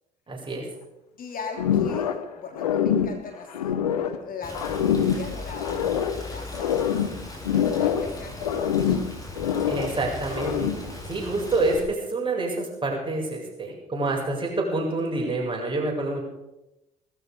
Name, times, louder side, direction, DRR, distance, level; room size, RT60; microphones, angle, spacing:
voice 1, 0.3-0.7 9.7-10.7 11.1-16.2, right 2 dB, 25° right, -1 dB, 7.7 m, -27 dB
voice 2, 1.2-3.7 4.1-9.1, left 5 dB, 45° left, 3 dB, 3.1 m, -40 dB
sound 1, 1.6-2.3 2.5-4.2 4.5-6.2 6.5-8.2 8.4-10.0 10.3-10.9, left 8 dB, 90° left, 1.0 m, -25 dB
Rain, 4.4-11.8, left 1 dB, 20° left, 7.3 m, -38 dB
18.5 x 14.5 x 5.4 m, 0.92 s
hypercardioid pair, 55°, 20 cm